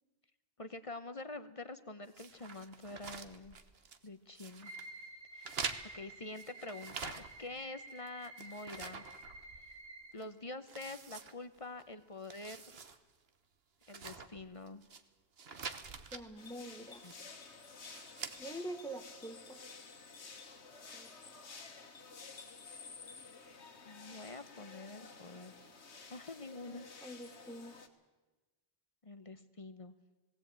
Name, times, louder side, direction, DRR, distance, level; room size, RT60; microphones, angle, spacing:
voice 1, 0.6-3.6 4.0-4.7 5.3-9.0 10.1-12.8 13.9-14.8 17.0-17.1 23.9-25.5 26.1-26.9 29.0-29.9, left 2 dB, 35° left, 11 dB, 0.9 m, -46 dB
sound 1, 2.1-4.1 4.4-4.9 5.4-7.6 7.9-9.8 10.2-10.3 10.7-11.8 12.2-13.0 13.3-13.4 13.8-15.0 15.4-16.2 16.9-17.4 17.8-18.4, right 5 dB, 65° right, 1.3 m, -46 dB
sound 2, 4.6-10.1, right 2 dB, 80° right, 4.4 m, -51 dB
voice 2, 16.1-17.0 18.4-19.6 20.9-21.2 26.7-27.8, right 1 dB, 5° left, 10 dB, 1.0 m, -46 dB
sound 3, 16.4-27.9, left 4 dB, 85° left, 1.8 m, -52 dB
18.5 x 17.0 x 8.8 m, 1.2 s
omnidirectional pair, 1.1 m